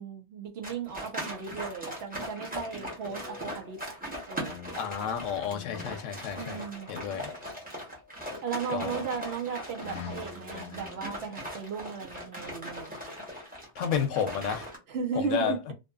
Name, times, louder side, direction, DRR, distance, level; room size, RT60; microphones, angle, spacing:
voice 1, 0.0-3.8 4.3-4.5 6.3-6.9 8.4-13.0 14.9-15.6, right 6 dB, 65° right, 0.8 m, -36 dB
sound 1, 0.6-14.8, equal, 10° right, 0.8 m, -40 dB
sound 2, 3.0-4.8 5.1-6.6 7.4-8.3 8.9-9.3 9.8-11.2, left 7 dB, 55° left, 0.6 m, -46 dB
voice 2, 4.8-6.6 6.9-7.3 8.7-9.0 13.8-14.7 15.2-15.5, left 8 dB, 90° left, 0.9 m, -31 dB
2.6 x 2.5 x 2.2 m
omnidirectional pair, 1.2 m